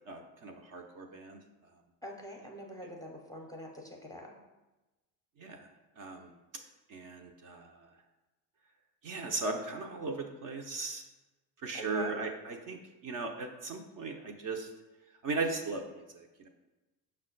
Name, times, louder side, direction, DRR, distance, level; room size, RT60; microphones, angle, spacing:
voice 1, 0.1-1.4 5.4-5.7 6.0-6.3 6.9-7.7 9.0-11.0 11.6-12.8 13.0-14.7 15.2-16.5, right 3 dB, 45° right, 3 dB, 0.6 m, -37 dB
voice 2, 2.0-4.3 11.7-12.3, left 1 dB, 10° left, 0 dB, 0.6 m, -44 dB
5.4 x 2.2 x 3.8 m, 1.1 s
hypercardioid pair, 75°, 46 cm